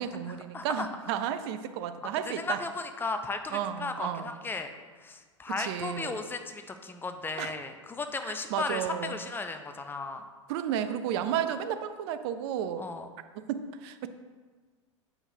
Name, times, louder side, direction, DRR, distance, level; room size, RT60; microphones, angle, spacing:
voice 1, 0.0-2.6 3.5-4.4 5.5-6.2 7.4-7.5 8.3-9.2 10.5-12.9 13.5-14.1, right 9 dB, 55° right, 10 dB, 0.5 m, -33 dB
voice 2, 0.5-0.9 2.3-4.7 5.0-10.2 11.1-11.3 12.8-13.1, left 3 dB, 15° left, 7 dB, 0.5 m, -35 dB
7.7 x 5.9 x 2.7 m, 1.4 s
hypercardioid pair, 100°, 16 cm